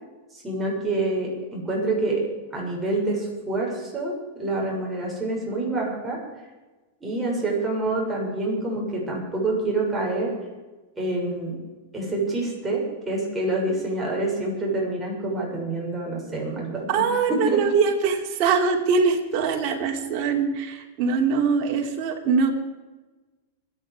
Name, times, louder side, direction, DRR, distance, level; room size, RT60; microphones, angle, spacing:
voice 1, 0.4-2.2 2.5-6.2 7.0-10.3 10.9-11.5 11.9-17.0 17.3-17.6, right 2 dB, 15° right, -3 dB, 6.5 m, -27 dB
voice 2, 16.9-22.5, right 5 dB, 45° right, 1 dB, 3.1 m, -22 dB
25.5 x 9.4 x 5.0 m, 1.2 s
hypercardioid pair, 115°, 0 cm